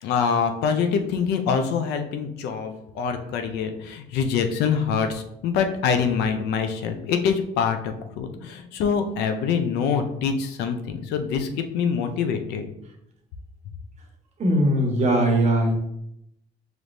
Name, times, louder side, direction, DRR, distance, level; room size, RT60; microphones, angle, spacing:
voice 1, 0.0-12.7, left 6 dB, 85° left, 7 dB, 0.6 m, -25 dB
voice 2, 14.4-15.7, right 1 dB, 40° right, 1 dB, 1.1 m, -20 dB
5.0 x 3.1 x 2.6 m, 0.79 s
cardioid pair, 110°, 17 cm